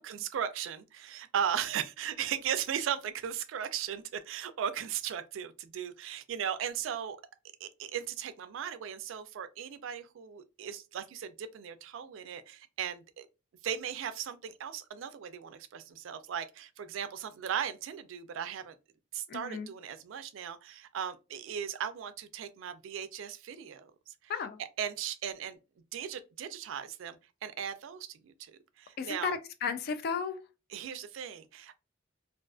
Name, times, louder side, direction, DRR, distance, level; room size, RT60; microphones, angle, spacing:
voice 1, 0.0-7.2 7.6-13.3 13.6-18.8 19.1-24.3 24.6-25.6 25.9-29.4 30.7-31.7, right 8 dB, 75° right, 0.3 m, -37 dB
voice 2, 19.3-19.7 24.3-24.6 29.0-30.4, left 5 dB, 50° left, 0.3 m, -34 dB
2.4 x 2.3 x 2.4 m
head